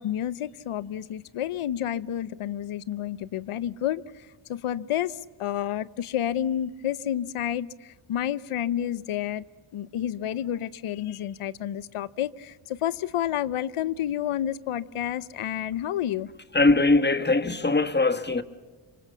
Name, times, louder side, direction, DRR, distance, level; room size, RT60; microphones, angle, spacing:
voice 1, 0.0-4.0 4.5-7.7 8.1-9.4 9.7-16.3, left 11 dB, 90° left, 0.8 m, -30 dB
voice 2, 16.5-18.4, left 3 dB, 20° left, 1.3 m, -21 dB
26.0 x 24.5 x 7.0 m
wide cardioid pair, 95°, 49 cm